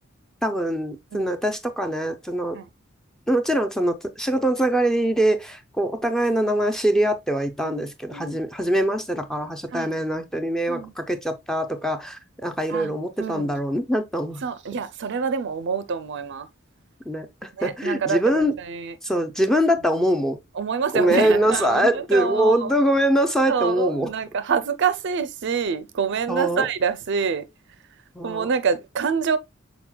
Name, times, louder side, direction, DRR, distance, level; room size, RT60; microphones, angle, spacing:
voice 1, 0.4-2.6 3.3-14.4 17.1-18.5 19.0-20.4 20.9-24.1 26.3-26.7 28.1-28.5, right 1 dB, ahead, 0.5 m, -23 dB
voice 2, 7.6-8.4 9.7-10.0 10.7-10.9 12.7-12.9 13.2-13.5 14.4-16.5 17.6-18.9 20.6-22.7 23.5-27.5 28.2-29.4, right 6 dB, 60° right, 0.5 m, -26 dB
6.0 x 3.9 x 2.2 m
head